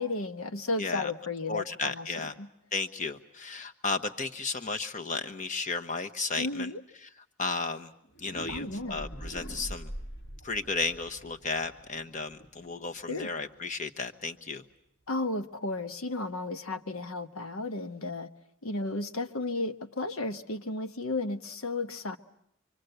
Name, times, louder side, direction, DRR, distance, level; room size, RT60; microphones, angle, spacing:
voice 1, 0.0-2.5 6.4-6.8 8.5-9.0 13.1-13.3 15.1-18.3 18.6-22.2, left 2 dB, 80° left, 9 dB, 1.2 m, -33 dB
voice 2, 0.8-1.1 1.5-2.3 2.7-6.7 7.0-7.1 7.4-7.9 8.2-9.9 10.4-14.6, left 4 dB, 35° left, 7 dB, 1.1 m, -34 dB
sound 1, 8.0-13.9, right 1 dB, 50° left, 1.6 m, -44 dB
26.0 x 24.5 x 8.0 m, 0.71 s
head